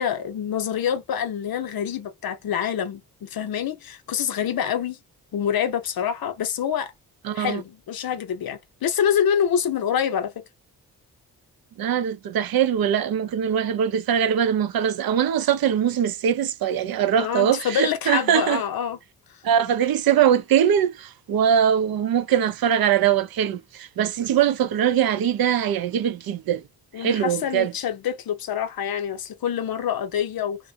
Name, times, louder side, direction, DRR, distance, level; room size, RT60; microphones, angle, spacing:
voice 1, 0.0-5.0 5.3-6.9 7.3-10.3 17.2-19.0 26.9-30.6, left 8 dB, 60° left, 0.7 m, -26 dB
voice 2, 7.3-7.6 11.8-18.6 19.4-26.6 27.0-27.7, right 9 dB, 60° right, 0.5 m, -22 dB
2.4 x 2.1 x 2.7 m
supercardioid pair, 50°, 40 cm